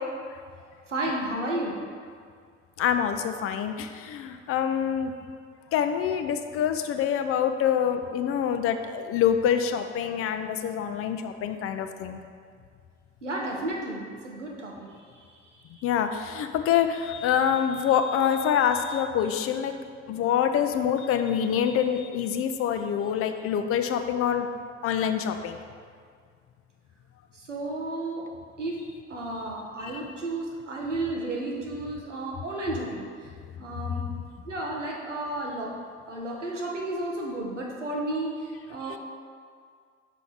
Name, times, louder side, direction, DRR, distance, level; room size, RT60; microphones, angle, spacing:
voice 1, 0.9-1.8 13.2-14.9 27.5-28.3 28.6-28.8 29.1-33.1 33.6-34.0 34.5-35.7 36.1-38.4 38.7-39.0, right 2 dB, 90° right, -2 dB, 0.7 m, -32 dB
voice 2, 2.8-5.1 5.7-12.2 15.8-19.7 20.1-24.5 24.8-25.6 29.8-30.0 38.9-39.0, left 8 dB, 40° left, 8 dB, 0.4 m, -26 dB
5.8 x 4.5 x 3.9 m, 2.1 s
figure-of-eight pair, 45°, 35 cm